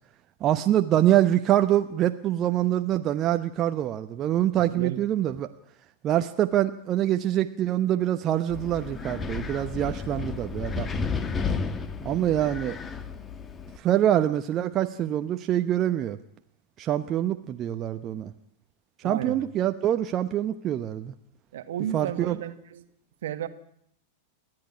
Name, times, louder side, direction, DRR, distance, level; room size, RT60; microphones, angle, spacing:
voice 1, 0.4-5.5 6.0-10.9 12.0-12.8 13.8-16.2 16.8-18.3 19.0-21.1 21.9-22.4, right 12 dB, 30° right, 8 dB, 1.0 m, -25 dB
voice 2, 4.6-5.0 19.0-19.4 21.5-22.8 23.2-23.5, right 10 dB, 60° right, 10 dB, 1.7 m, -33 dB
Wind, 8.5-13.8, left 5 dB, 20° left, 1.6 m, -32 dB
29.0 x 11.0 x 10.0 m, 0.71 s
figure-of-eight pair, 90°, 0 cm